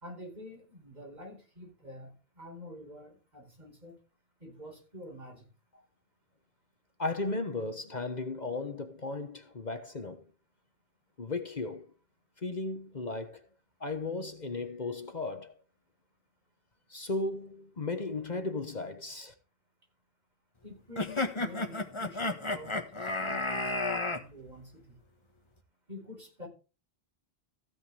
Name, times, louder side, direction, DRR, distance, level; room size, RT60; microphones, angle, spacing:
voice 1, 0.0-4.0 4.4-5.5 20.6-25.0 25.9-26.5, left 1 dB, 45° right, 4.9 m, -48 dB
voice 2, 7.0-10.2 11.2-11.9 12.4-13.4 13.8-15.5 16.9-19.3, left 3 dB, 45° left, 1.3 m, -35 dB
sound 1, 21.0-24.2, left 2 dB, 30° left, 1.5 m, -32 dB
15.5 x 9.4 x 3.4 m
omnidirectional pair, 1.1 m